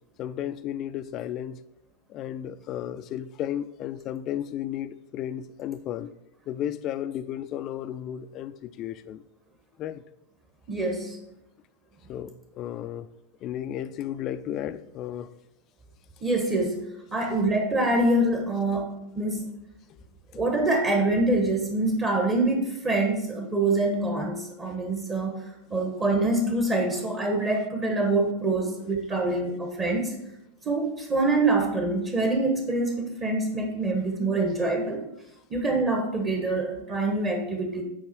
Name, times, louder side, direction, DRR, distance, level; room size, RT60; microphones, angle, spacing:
voice 1, 0.2-1.6 2.1-6.1 6.5-9.2 9.8-10.0 12.1-13.1 13.4-15.3, left 11 dB, 35° left, 13 dB, 0.4 m, -33 dB
voice 2, 10.7-11.2 16.2-16.8 17.1-19.5 20.3-25.4 25.7-30.1 30.6-35.0 35.5-37.8, right 2 dB, 25° right, 2 dB, 1.2 m, -25 dB
8.4 x 4.9 x 4.5 m, 0.86 s
figure-of-eight pair, 90°, 0 cm